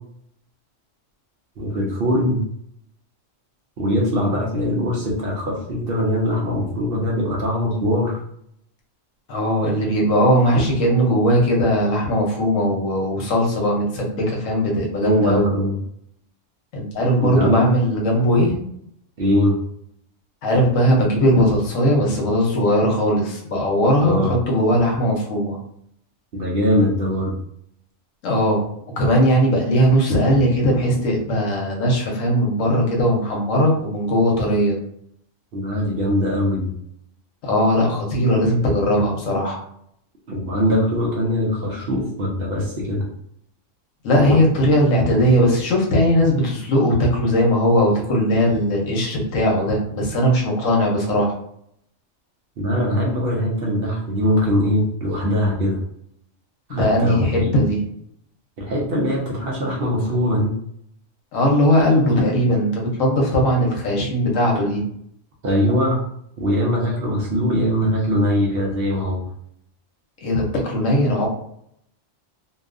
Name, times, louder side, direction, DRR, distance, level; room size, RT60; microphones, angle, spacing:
voice 1, 1.6-2.4 3.8-8.2 15.0-15.8 17.2-17.7 19.2-19.6 24.0-24.3 26.3-27.3 35.5-36.7 40.3-43.1 52.6-55.8 56.7-57.5 58.6-60.5 65.4-66.0 66.4-69.3, equal, 55° right, -3 dB, 0.7 m, -21 dB
voice 2, 9.3-15.5 16.7-18.5 20.4-25.6 28.2-28.6 29.0-34.8 37.4-39.6 44.0-51.3 56.7-57.8 61.3-64.8 70.2-71.3, equal, 80° left, -1 dB, 1.1 m, -19 dB
2.7 x 2.3 x 2.4 m, 0.70 s
omnidirectional pair, 1.3 m